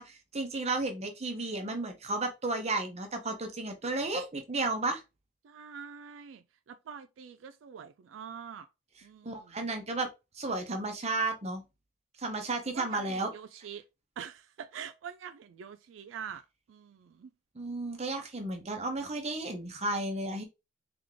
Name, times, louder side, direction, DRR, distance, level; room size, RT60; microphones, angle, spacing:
voice 1, 0.0-5.0 9.2-10.1 10.4-11.6 12.2-13.3 17.6-20.4, right 2 dB, 35° right, 0.9 m, -33 dB
voice 2, 5.4-8.7 9.0-9.6 12.7-13.8 14.2-16.4 16.7-17.3, right 7 dB, 75° right, 0.3 m, -45 dB
3.7 x 3.5 x 3.2 m
head